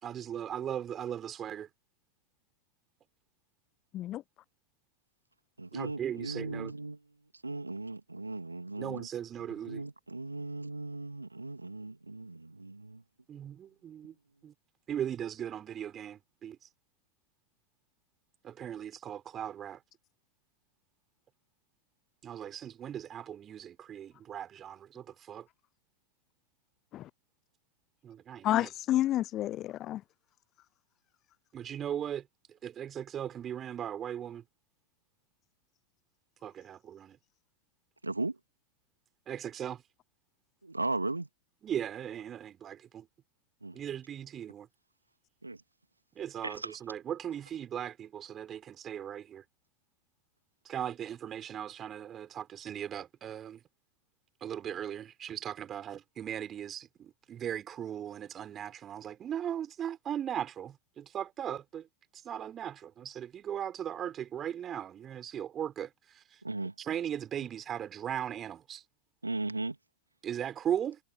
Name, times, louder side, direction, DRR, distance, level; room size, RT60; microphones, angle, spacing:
voice 1, 0.0-1.7 5.7-6.7 8.8-9.8 13.3-14.1 14.4-14.5 14.9-16.6 18.4-19.8 22.2-25.5 28.0-28.7 31.5-32.2 32.6-34.4 36.4-37.2 39.3-39.8 41.6-43.1 43.7-44.7 46.2-49.4 50.6-53.6 54.4-61.8 62.2-65.9 66.8-68.8 70.2-71.0, right 9 dB, 25° right, 6.4 m, -38 dB
voice 2, 5.6-7.0 7.4-9.1 9.5-13.0 38.0-38.4 40.6-41.3 43.6-43.8 45.4-45.6 46.4-46.8 66.4-66.7 69.2-69.8, right 2 dB, 80° right, 2.7 m, -37 dB
voice 3, 28.4-30.0, left 13 dB, 35° left, 0.3 m, -30 dB
figure-of-eight pair, 90°, 0 cm